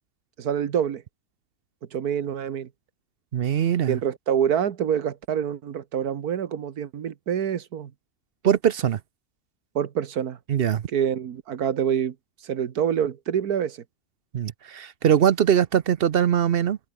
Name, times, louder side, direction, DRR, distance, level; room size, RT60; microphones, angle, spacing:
voice 1, 0.4-1.0 1.9-2.7 3.9-7.9 9.7-10.4 10.9-12.1 12.4-13.8, right 8 dB, 75° right, 1.7 m, -26 dB
voice 2, 3.3-4.0 8.4-9.0 10.5-10.9 14.3-16.8, right 9 dB, 60° right, 0.6 m, -21 dB
open air
omnidirectional pair, 1.6 m